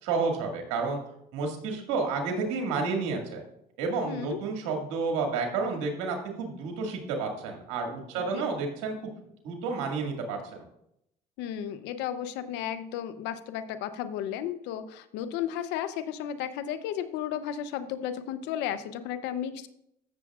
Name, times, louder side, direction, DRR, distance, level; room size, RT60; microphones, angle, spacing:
voice 1, 0.0-1.0 1.3-3.4 3.8-9.1 9.4-10.6, right 4 dB, 90° right, 2 dB, 2.0 m, -30 dB
voice 2, 4.1-4.4 8.1-8.4 11.4-19.7, left 10 dB, 85° left, 12 dB, 0.7 m, -34 dB
14.5 x 7.0 x 2.4 m, 0.77 s
supercardioid pair, 85°, 18 cm